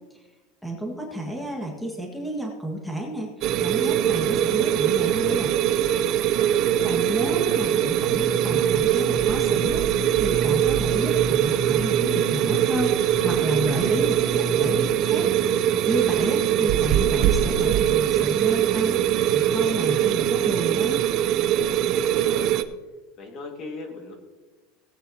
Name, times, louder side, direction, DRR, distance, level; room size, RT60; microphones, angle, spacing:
voice 1, 0.6-3.3 3.6-5.5 6.5-21.0, right 1 dB, ahead, 0 dB, 1.7 m, -31 dB
sound 1, 3.4-22.6, right 11 dB, 50° right, 0.6 m, -22 dB
voice 2, 6.4-6.8 21.9-22.5 23.2-24.1, left 3 dB, 40° left, 3 dB, 2.0 m, -39 dB
sound 2, 8.0-19.9, right 3 dB, 35° right, 1.1 m, -34 dB
17.5 x 8.8 x 2.9 m, 1.2 s
supercardioid pair, 140°, 0 cm